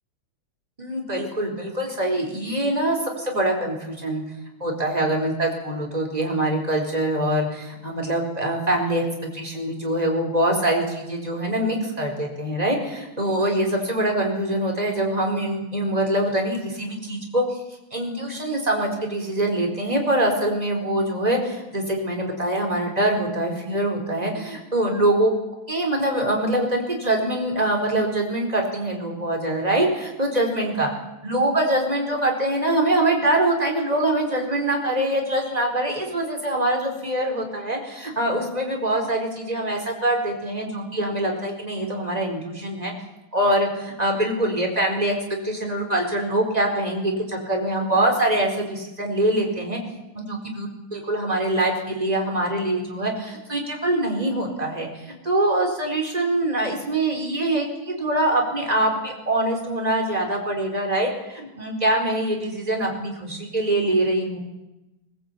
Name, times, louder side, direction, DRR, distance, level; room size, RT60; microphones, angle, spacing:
voice 1, 0.8-4.2 4.6-9.0 9.3-17.4 17.9-25.3 25.7-30.9 31.2-42.9 43.3-45.1 45.4-49.8 50.1-64.4, right 1 dB, 15° right, 2 dB, 4.6 m, -24 dB
20.5 x 20.0 x 8.7 m, 0.98 s
omnidirectional pair, 2.4 m